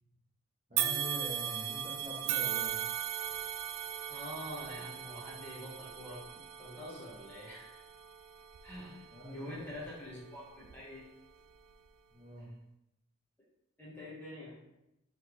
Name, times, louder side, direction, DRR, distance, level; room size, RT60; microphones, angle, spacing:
voice 1, 0.7-2.8 9.1-9.7 12.1-12.5, equal, 30° right, -7 dB, 1.2 m, -44 dB
sound 1, 0.8-10.1 10.6-10.8 11.7-11.8, right 10 dB, 65° right, 0.3 m, -38 dB
voice 2, 4.1-6.3 6.6-7.8 8.6-9.1 9.3-11.0 12.4-12.5 13.8-14.6, left 1 dB, 10° left, -8 dB, 1.3 m, -46 dB
4.3 x 3.5 x 3.1 m, 0.86 s
head